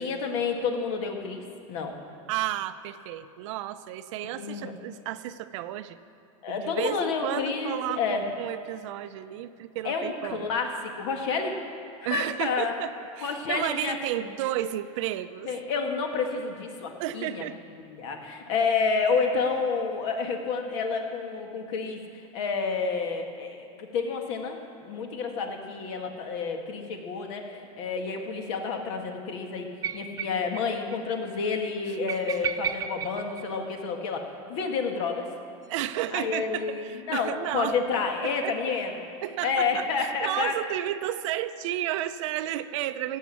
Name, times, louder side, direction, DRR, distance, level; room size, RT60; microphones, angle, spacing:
voice 1, 0.0-2.0 4.2-4.7 6.4-8.2 9.8-11.6 12.1-12.7 13.2-14.0 15.5-17.5 18.0-22.0 22.3-29.7 29.9-34.2 34.5-35.3 36.1-39.0 39.4-40.5, left 5 dB, 60° left, 3 dB, 1.9 m, -29 dB
voice 2, 2.3-6.0 6.5-10.5 12.0-15.5 17.0-17.6 31.9-32.0 35.7-37.7 38.2-38.6 39.2-43.2, right 13 dB, 65° right, 11 dB, 0.7 m, -32 dB
sound 1, 29.8-30.7 30.9-31.0 31.3-31.4 32.1-34.1 35.6-36.9, right 9 dB, 20° right, 0.5 m, -35 dB
16.5 x 8.1 x 7.2 m, 2.6 s
supercardioid pair, 150°, 17 cm